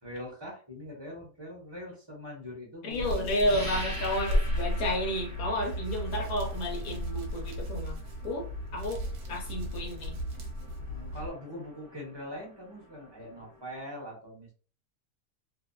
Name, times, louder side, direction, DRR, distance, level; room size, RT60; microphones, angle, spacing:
voice 1, 0.0-3.3 10.9-14.5, left 1 dB, 25° right, -3 dB, 0.7 m, -42 dB
voice 2, 2.8-8.0 8.2-10.2, left 1 dB, 70° left, 0 dB, 1.2 m, -31 dB
Hands, 2.9-11.3, equal, 65° right, 1.0 m, -34 dB
sound 1, 3.4-13.7, equal, 30° left, 0.3 m, -46 dB
2.6 x 2.6 x 2.2 m, 0.39 s
omnidirectional pair, 1.6 m